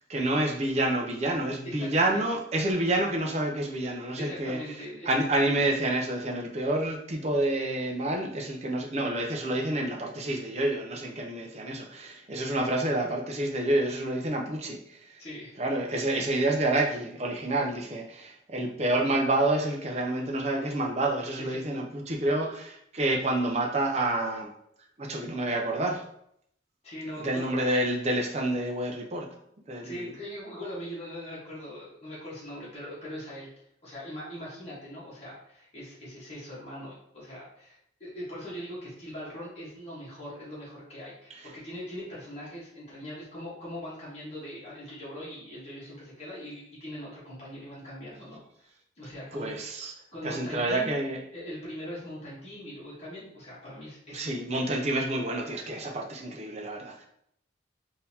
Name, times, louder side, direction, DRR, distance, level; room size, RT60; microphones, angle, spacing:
voice 1, 0.1-4.6 5.1-14.8 15.6-22.5 22.9-24.5 25.0-26.0 27.2-29.3 29.7-30.1 49.3-49.9 50.2-51.2 54.1-57.1, right 1 dB, 35° right, 1 dB, 0.5 m, -28 dB
voice 2, 1.6-2.3 4.2-5.1 15.2-15.6 21.4-21.8 22.4-22.5 26.8-27.6 29.8-33.5 33.8-48.7 49.0-49.6 49.9-50.9 51.3-54.3, equal, 30° left, -8 dB, 1.2 m, -41 dB
3.8 x 2.7 x 2.8 m, 0.73 s
head